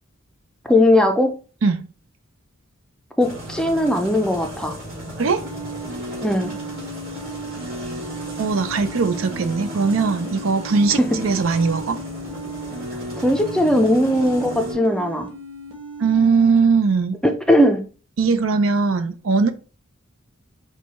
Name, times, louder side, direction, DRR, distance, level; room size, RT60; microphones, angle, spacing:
voice 1, 0.7-1.3 3.2-4.8 6.2-6.5 11.0-11.1 13.2-15.3 17.2-17.8, left 1 dB, 5° left, 0.5 m, -18 dB
sound 1, 3.2-14.7, right 1 dB, 45° right, 2.2 m, -36 dB
sound 2, 5.4-16.6, right 1 dB, 25° right, 1.1 m, -34 dB
voice 2, 8.4-12.0 16.0-17.2 18.2-19.5, right 4 dB, 70° right, 0.5 m, -20 dB
4.7 x 2.3 x 4.0 m
head